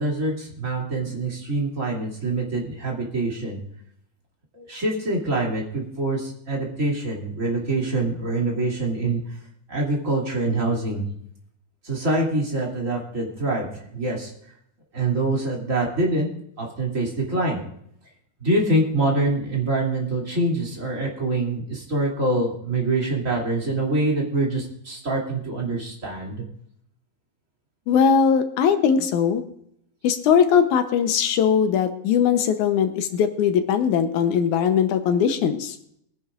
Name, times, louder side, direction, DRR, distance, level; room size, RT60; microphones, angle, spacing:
voice 1, 0.0-3.6 4.5-9.2 9.7-11.0 11.8-14.3 14.9-16.3 16.6-17.6 18.4-26.4, right 2 dB, 25° right, -2 dB, 2.8 m, -25 dB
voice 2, 27.9-29.4 30.0-35.8, left 7 dB, 75° left, 8 dB, 2.2 m, -20 dB
23.0 x 10.5 x 2.5 m, 0.70 s
omnidirectional pair, 3.6 m